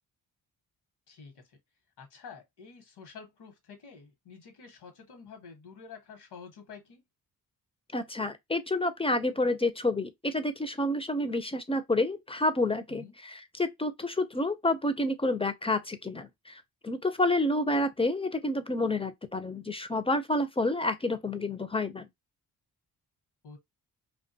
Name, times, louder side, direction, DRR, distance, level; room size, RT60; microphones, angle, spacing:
voice 1, 1.1-1.6 2.0-7.0 12.9-13.1 23.4-23.6, left 5 dB, 75° left, 1.0 m, -49 dB
voice 2, 7.9-22.1, left 2 dB, 15° left, 0.3 m, -29 dB
2.4 x 2.2 x 2.6 m
cardioid pair, 60°, 40 cm